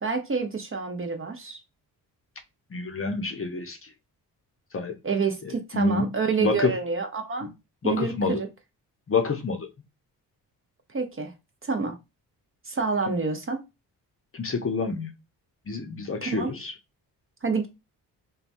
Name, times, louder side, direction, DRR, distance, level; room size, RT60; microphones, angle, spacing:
voice 1, 0.0-1.6 5.0-7.5 7.8-8.5 10.9-11.3 11.6-12.0 12.7-13.6 16.2-16.5 17.4-17.7, right 4 dB, 30° right, 0.7 m, -28 dB
voice 2, 2.7-3.9 4.7-5.0 5.4-6.1 6.4-6.7 7.4-7.5 7.8-8.4 9.1-9.7 14.3-15.1 15.7-16.7, left 4 dB, 30° left, 0.7 m, -27 dB
3.1 x 2.3 x 2.5 m
supercardioid pair, 50°, 43 cm